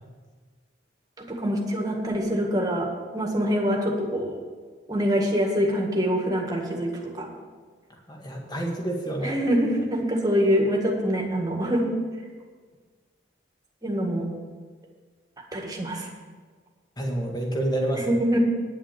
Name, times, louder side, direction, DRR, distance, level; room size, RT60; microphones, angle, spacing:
voice 1, 1.2-4.4 4.9-7.3 9.2-11.9 13.8-14.3 15.5-16.1 17.9-18.4, equal, 20° right, 0 dB, 1.8 m, -25 dB
voice 2, 8.1-9.4 17.0-18.1, right 1 dB, 20° left, 0 dB, 1.8 m, -28 dB
10.0 x 7.4 x 8.5 m, 1.5 s
head